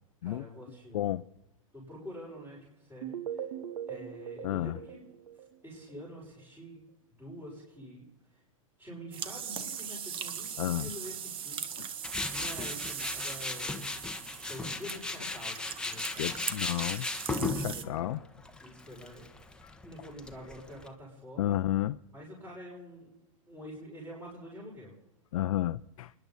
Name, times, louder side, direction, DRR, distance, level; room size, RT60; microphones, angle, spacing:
voice 1, 0.2-1.1 1.7-3.5 3.9-5.1 5.6-6.8 7.1-8.0 8.8-11.6 12.3-13.8 14.3-15.6 15.8-16.4 17.7-18.3 18.6-19.3 19.8-21.6 22.1-23.1 23.5-24.9, equal, 10° right, 6.7 m, -46 dB
sound 1, 3.0-6.0, right 9 dB, 80° right, 1.2 m, -40 dB
voice 2, 4.4-4.8 10.6-10.9 11.8-11.9 16.2-17.1 17.4-18.2 21.4-22.0 25.3-26.1, left 13 dB, 70° left, 0.5 m, -31 dB
sound 2, 9.1-17.8, right 8 dB, 30° right, 1.1 m, -40 dB
Tools, 12.0-20.9, left 2 dB, 5° left, 1.1 m, -37 dB
29.5 x 10.5 x 4.1 m
hypercardioid pair, 120°, 18 cm